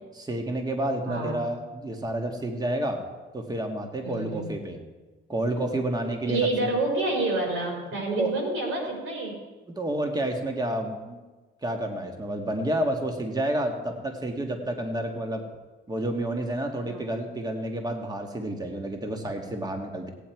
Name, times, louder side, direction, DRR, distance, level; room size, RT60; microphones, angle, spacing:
voice 1, 0.2-3.0 3.3-4.8 5.3-6.7 8.1-8.3 9.7-11.2 11.6-15.4 15.9-20.1, right 1 dB, 20° right, 3 dB, 1.6 m, -30 dB
voice 2, 1.1-1.4 4.0-4.5 6.3-9.4 16.8-17.0, right 2 dB, 85° right, 0 dB, 4.1 m, -28 dB
17.5 x 9.2 x 4.6 m, 1.2 s
cardioid pair, 90°, 20 cm